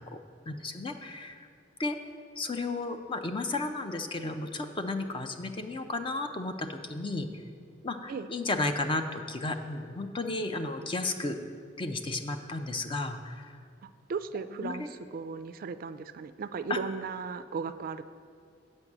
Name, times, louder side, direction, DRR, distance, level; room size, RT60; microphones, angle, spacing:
voice 1, 0.5-1.5 1.8-2.0 2.4-7.3 7.8-11.4 11.8-13.6 14.5-14.9 16.7-16.8, left 2 dB, 30° left, 7 dB, 0.5 m, -33 dB
voice 2, 13.8-14.9 15.1-18.0, right 5 dB, 50° right, 12 dB, 0.3 m, -36 dB
7.9 x 5.3 x 7.1 m, 2.2 s
head